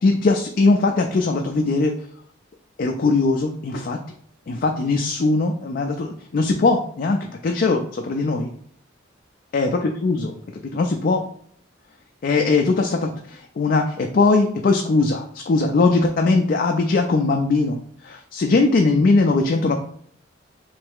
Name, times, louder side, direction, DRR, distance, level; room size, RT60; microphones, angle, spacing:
voice 1, 0.0-1.9 2.8-4.0 4.5-7.2 7.4-8.5 9.5-10.3 10.7-11.2 12.2-17.8 18.0-19.8, left 3 dB, 50° left, 3 dB, 0.4 m, -20 dB
3.4 x 3.2 x 3.5 m, 0.64 s
head